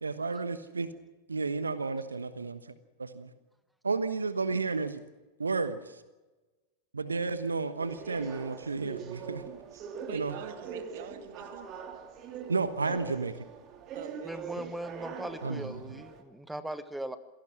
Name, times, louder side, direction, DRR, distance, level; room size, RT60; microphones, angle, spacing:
voice 1, 0.0-0.9 1.3-2.6 3.0-3.3 3.8-5.0 5.4-6.0 6.9-9.4 10.1-10.3 12.5-13.4 15.4-15.8, right 4 dB, 75° right, 12 dB, 1.2 m, -32 dB
sound 1, 7.8-16.2, right 6 dB, 35° right, 2.7 m, -43 dB
voice 2, 10.0-11.7 13.9-14.6 15.3-15.5, right 9 dB, 55° right, 8 dB, 2.4 m, -44 dB
voice 3, 14.2-17.2, right 1 dB, 5° right, 13 dB, 1.2 m, -39 dB
27.5 x 17.0 x 7.5 m, 1.2 s
figure-of-eight pair, 90°, 0 cm